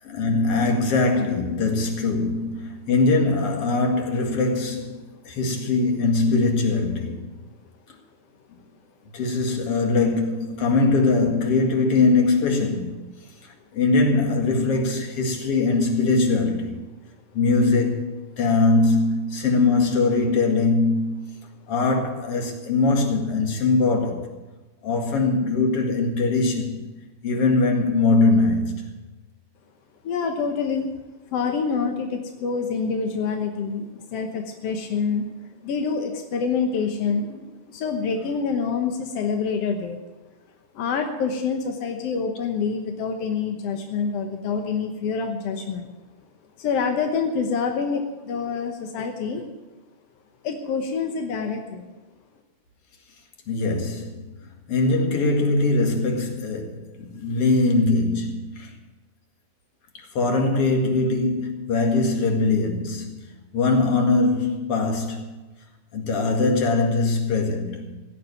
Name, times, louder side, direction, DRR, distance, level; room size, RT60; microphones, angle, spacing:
voice 1, 0.0-5.0 5.2-7.3 9.1-13.1 13.4-16.8 17.3-21.2 21.7-24.3 24.8-26.9 27.2-28.8 53.5-54.2 54.7-58.7 59.9-65.3 65.9-68.0, left 3 dB, 45° left, 2.5 m, -22 dB
voice 2, 30.0-30.9 31.3-35.3 35.6-40.0 40.7-45.9 46.6-49.4 50.4-51.9, left 5 dB, 70° left, 1.5 m, -26 dB
16.5 x 7.6 x 9.6 m
omnidirectional pair, 4.3 m